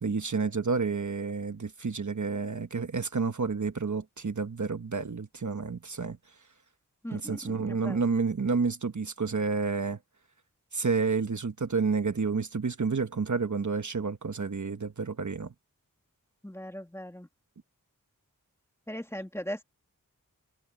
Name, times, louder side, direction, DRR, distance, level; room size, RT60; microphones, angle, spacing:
voice 1, 0.0-6.2 7.1-10.0 10.7-15.5, right 4 dB, 60° right, 1.2 m, -30 dB
voice 2, 7.0-8.1 16.4-17.3 18.9-19.6, equal, 10° left, 2.1 m, -39 dB
wide cardioid pair, 65°, 33 cm